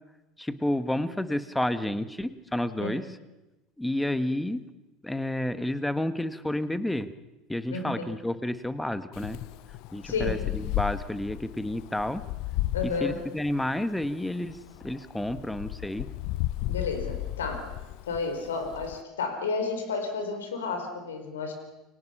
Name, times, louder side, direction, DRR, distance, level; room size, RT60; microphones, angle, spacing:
voice 1, 0.4-3.1 3.8-4.6 5.0-7.1 7.5-9.4 9.9-12.2 12.8-14.6 14.8-16.1, left 1 dB, 5° left, 12 dB, 1.7 m, -30 dB
voice 2, 7.7-8.1 10.0-10.4 12.7-13.2 16.7-17.7 18.1-21.5, left 4 dB, 80° left, 6 dB, 4.6 m, -31 dB
Wind, 9.1-19.0, left 15 dB, 60° left, 0.8 m, -34 dB
29.5 x 24.0 x 5.8 m, 1.0 s
figure-of-eight pair, 70°, 0 cm